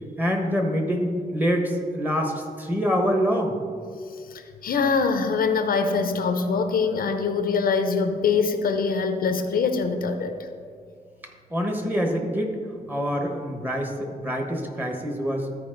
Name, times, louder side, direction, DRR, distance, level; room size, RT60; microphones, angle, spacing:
voice 1, 0.2-3.6 11.5-12.6 12.9-15.5, equal, 10° right, 3 dB, 1.2 m, -25 dB
voice 2, 4.3-10.5, left 5 dB, 65° left, 7 dB, 0.6 m, -24 dB
13.0 x 4.8 x 3.8 m, 2.2 s
cardioid pair, 110°, 16 cm